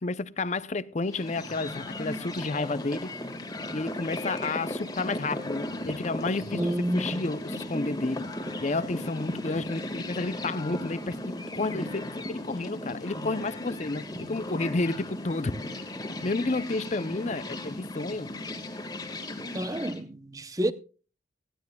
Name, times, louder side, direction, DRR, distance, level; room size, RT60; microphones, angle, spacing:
voice 1, 0.0-3.1 3.7-8.3 8.6-15.8 16.2-18.3, left 3 dB, 35° left, 0.5 m, -31 dB
sound 1, 1.0-20.0, left 1 dB, 20° left, 1.7 m, -36 dB
voice 2, 6.5-7.3 19.5-20.7, right 1 dB, 20° right, 0.7 m, -29 dB
19.0 x 15.0 x 2.3 m
head